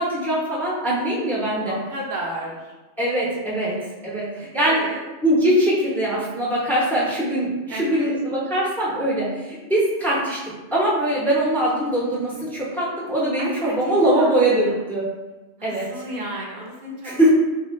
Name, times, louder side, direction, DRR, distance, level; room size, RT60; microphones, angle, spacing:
voice 1, 0.0-1.8 3.0-3.8 4.0-4.8 5.2-10.4 10.7-15.1 15.6-15.9 17.0-17.3, right 1 dB, ahead, -6 dB, 0.6 m, -22 dB
voice 2, 1.7-2.7 3.7-5.0 7.7-8.1 13.4-13.7 14.0-14.8 15.6-17.2, right 1 dB, 45° right, -2 dB, 0.8 m, -34 dB
3.8 x 2.3 x 3.1 m, 1.1 s
omnidirectional pair, 1.2 m